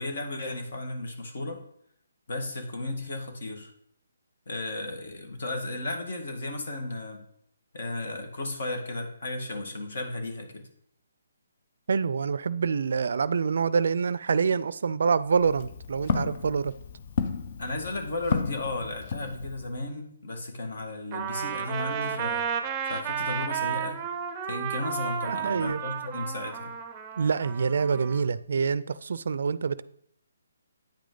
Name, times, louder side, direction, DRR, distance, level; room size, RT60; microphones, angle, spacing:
voice 1, 0.0-1.6 2.3-3.7 4.5-7.2 7.7-10.6 17.6-24.0 24.5-26.7, left 2 dB, 60° left, 1.6 m, -34 dB
voice 2, 11.9-16.7 25.3-25.8 27.2-29.8, right 5 dB, 65° right, 0.3 m, -26 dB
Walk footsteps, 15.2-19.8, left 5 dB, 40° left, 0.6 m, -33 dB
Trumpet, 21.1-28.2, right 7 dB, 20° right, 0.6 m, -33 dB
9.1 x 5.1 x 3.9 m
hypercardioid pair, 160°, 0 cm